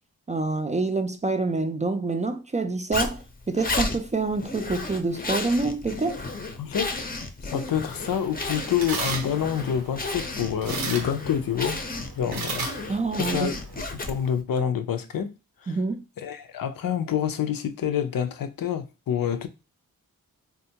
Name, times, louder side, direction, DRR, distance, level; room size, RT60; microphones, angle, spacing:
voice 1, 0.3-6.2 12.9-13.5 15.7-16.0, right 3 dB, 20° right, 0.3 m, -27 dB
Zipper (clothing), 2.9-14.4, left 2 dB, 25° left, 0.6 m, -33 dB
voice 2, 6.6-6.9 7.4-11.8 12.1-13.6 13.8-15.3 15.6-15.8 16.2-19.5, left 9 dB, 70° left, 0.5 m, -27 dB
sound 1, 7.7-13.8, right 4 dB, 85° right, 0.6 m, -36 dB
3.6 x 2.3 x 2.7 m
cardioid pair, 45°, 35 cm